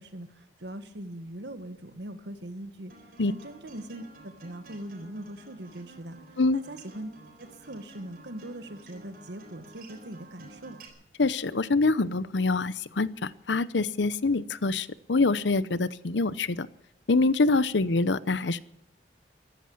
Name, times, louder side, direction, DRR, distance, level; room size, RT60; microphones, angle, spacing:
voice 1, 0.0-2.9 3.3-6.2 6.5-7.1 7.4-10.8, right 1 dB, 75° right, 10 dB, 1.6 m, -41 dB
Acoustic guitar, 2.9-10.9, right 2 dB, 50° right, 4.2 m, -51 dB
voice 2, 11.2-16.7 17.1-18.6, left 3 dB, 85° left, 17 dB, 0.8 m, -25 dB
15.0 x 13.5 x 7.2 m, 0.78 s
head